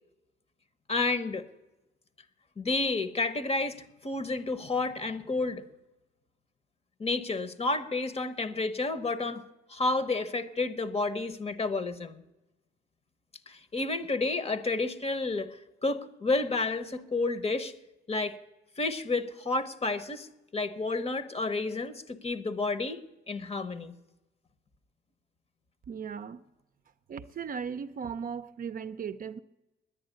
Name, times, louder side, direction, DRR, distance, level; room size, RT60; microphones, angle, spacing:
voice 1, 0.9-1.5 2.6-5.6 7.0-9.4 9.7-12.2 13.5-17.7 18.1-18.4 18.8-23.0 23.3-23.9, left 3 dB, 30° left, 1.1 m, -30 dB
voice 2, 25.9-26.4 27.1-29.4, right 6 dB, 45° right, 0.6 m, -37 dB
10.5 x 9.5 x 9.2 m
cardioid pair, 90°, 20 cm